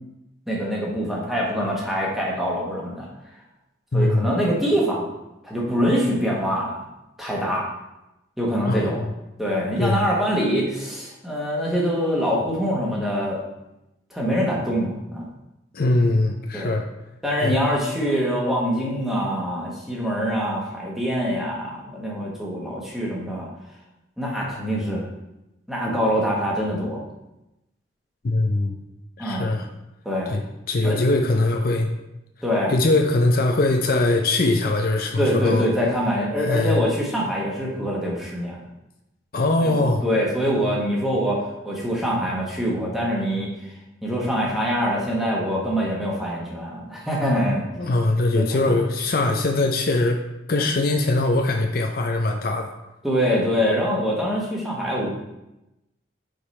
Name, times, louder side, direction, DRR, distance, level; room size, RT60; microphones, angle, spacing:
voice 1, 0.5-3.1 3.9-5.1 5.4-6.8 7.2-7.7 8.4-9.0 9.4-13.4 14.1-15.3 16.5-16.7 17.2-23.5 24.2-25.0 25.7-27.0 29.2-29.5 30.0-30.3 30.8-31.0 32.4-32.7 35.2-38.6 39.6-43.7 44.0-47.7 48.3-48.8 53.0-55.2, equal, ahead, -4 dB, 1.2 m, -24 dB
voice 2, 3.9-4.3 8.7-9.1 9.8-10.1 15.7-16.8 17.4-17.6 28.2-28.8 29.2-29.7 30.3-30.4 30.7-31.9 32.7-35.7 36.4-36.8 39.3-40.0 47.7-50.2 50.5-52.7, left 2 dB, 50° left, 2 dB, 0.5 m, -21 dB
5.2 x 4.9 x 4.2 m, 0.93 s
head